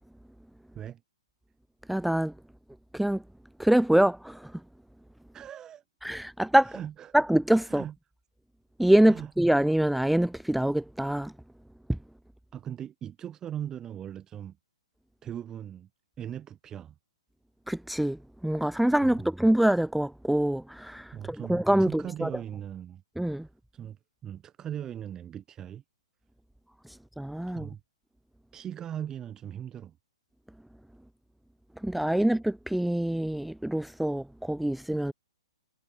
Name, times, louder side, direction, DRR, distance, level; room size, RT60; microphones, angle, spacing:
voice 1, 1.9-2.3 2.9-3.2 3.6-4.6 6.0-6.8 7.1-7.8 8.8-11.3 11.9-12.0 17.7-22.3 23.2-23.5 26.8-27.7 31.8-35.1, right 1 dB, ahead, 0.3 m, -25 dB
voice 2, 5.3-5.8 6.7-7.1 7.7-7.9 9.1-9.3 12.5-14.6 15.2-15.9 16.2-17.0 19.0-19.2 21.1-23.0 23.7-25.8 27.5-27.8 28.5-30.0, right 10 dB, 20° right, 3.7 m, -39 dB
figure-of-eight pair, 120°, 3 cm